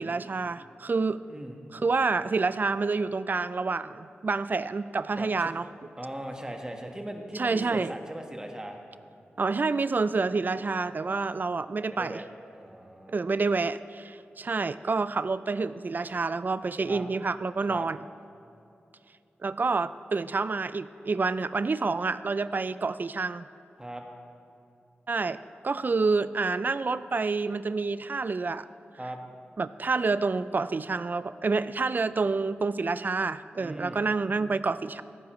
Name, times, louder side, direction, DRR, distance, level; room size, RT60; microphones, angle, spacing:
voice 1, 0.0-1.2 1.7-5.7 7.3-7.9 9.4-12.2 13.1-18.0 19.4-23.5 25.1-28.7 29.6-35.0, right 4 dB, 50° right, 15 dB, 0.3 m, -28 dB
voice 2, 5.2-5.5 6.0-8.8 10.9-11.0 11.9-12.2 12.5-13.2 16.9-17.0 17.7-17.9 23.8-24.0 29.0-29.2 33.6-34.0, right 1 dB, 20° right, 3 dB, 1.4 m, -39 dB
16.5 x 9.5 x 3.1 m, 2.7 s
cardioid pair, 50°, 4 cm